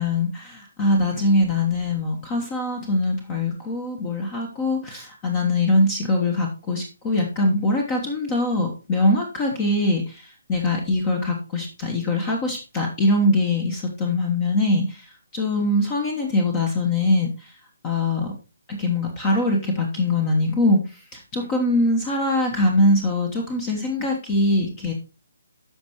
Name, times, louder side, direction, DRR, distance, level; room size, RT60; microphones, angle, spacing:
voice 1, 0.0-15.1 15.3-17.5 17.8-18.3 18.7-24.9, left 2 dB, 20° left, 2 dB, 1.2 m, -22 dB
13.5 x 5.3 x 3.0 m, 0.31 s
figure-of-eight pair, 140°, 0 cm